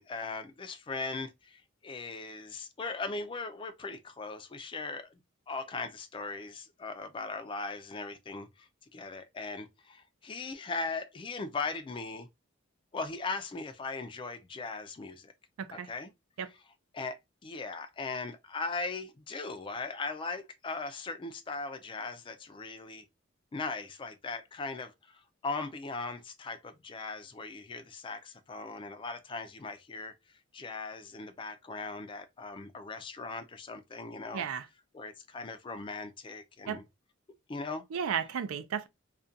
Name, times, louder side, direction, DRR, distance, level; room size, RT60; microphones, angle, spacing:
voice 1, 0.0-5.2 5.5-12.3 12.9-15.3 15.7-16.1 16.5-16.6 16.9-23.0 23.5-34.5 34.9-36.8 37.5-37.8, left 3 dB, 25° left, 0.3 m, -39 dB
voice 2, 34.3-34.6 36.7-36.8 37.9-38.9, right 7 dB, 85° right, 0.4 m, -33 dB
2.4 x 2.2 x 2.5 m
head